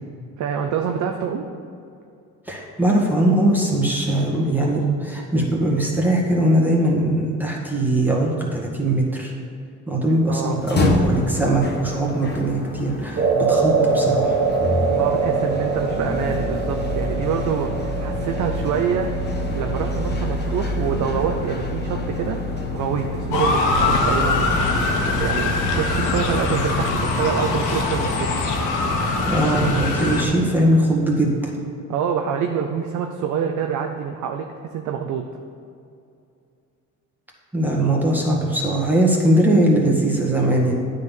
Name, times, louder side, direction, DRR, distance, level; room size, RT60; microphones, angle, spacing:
voice 1, 0.4-1.4 10.3-10.6 14.8-19.1 19.5-22.4 22.7-24.6 25.2-28.3 31.9-35.3, right 7 dB, 75° right, 3 dB, 0.7 m, -26 dB
voice 2, 2.5-9.3 9.9-14.4 29.3-31.5 37.5-40.7, right 1 dB, 5° right, -3 dB, 1.9 m, -20 dB
sound 1, 10.5-28.7, left 2 dB, 35° left, 1.3 m, -27 dB
sound 2, 13.2-21.5, right 5 dB, 55° right, 1.5 m, -24 dB
Motor vehicle (road) / Siren, 23.3-30.3, left 3 dB, 85° left, 1.2 m, -22 dB
9.4 x 4.1 x 7.2 m, 2.5 s
cardioid pair, 90°, 30 cm